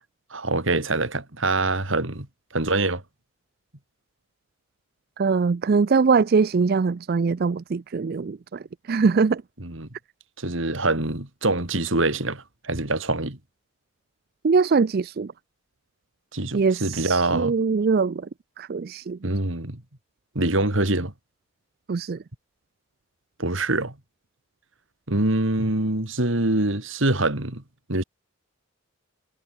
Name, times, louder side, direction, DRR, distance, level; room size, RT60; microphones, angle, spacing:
voice 1, 0.3-2.3 2.5-3.0 9.6-9.9 10.4-13.4 16.3-17.5 19.2-19.8 20.3-21.1 23.4-23.9 25.1-27.6 27.9-28.0, right 2 dB, 65° right, 3.0 m, -24 dB
voice 2, 5.2-8.6 8.9-9.4 14.4-15.3 16.5-18.3 18.6-19.2 21.9-22.2, right 5 dB, 45° right, 0.4 m, -22 dB
head